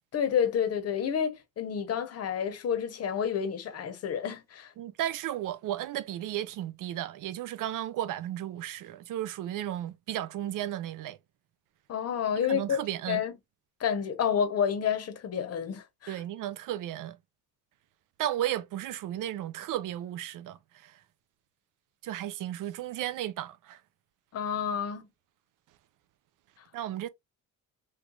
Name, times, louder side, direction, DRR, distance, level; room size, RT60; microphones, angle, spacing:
voice 1, 0.1-4.7 11.9-12.8 13.1-13.3 13.8-16.2 24.3-25.0, left 8 dB, 45° left, 0.9 m, -29 dB
voice 2, 4.8-11.2 12.5-13.2 16.1-17.2 18.2-20.9 22.0-23.8 26.7-27.1, right 12 dB, 60° right, 0.5 m, -34 dB
3.2 x 3.1 x 2.3 m
cardioid pair, 150°, 36 cm